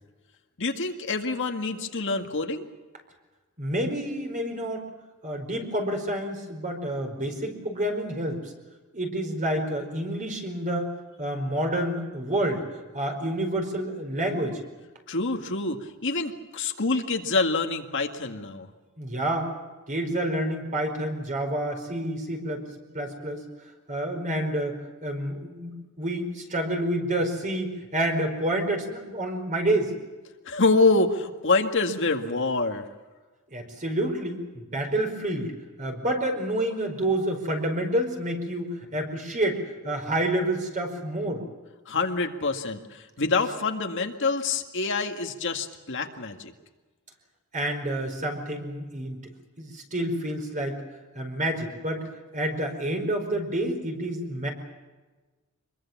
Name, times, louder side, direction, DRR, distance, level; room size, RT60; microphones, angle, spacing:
voice 1, 0.6-2.6 15.1-18.7 30.5-32.9 41.9-46.5, left 3 dB, 60° left, 4 dB, 2.0 m, -26 dB
voice 2, 3.6-4.8 5.2-8.5 8.9-10.9 11.2-14.6 19.0-19.5 19.9-22.6 22.9-23.4 23.9-24.7 25.0-29.9 33.5-35.5 35.8-41.4 47.5-49.2 49.6-50.8 51.1-52.1 52.3-54.5, right 1 dB, 35° right, 4 dB, 4.9 m, -28 dB
25.5 x 22.5 x 7.4 m, 1.2 s
head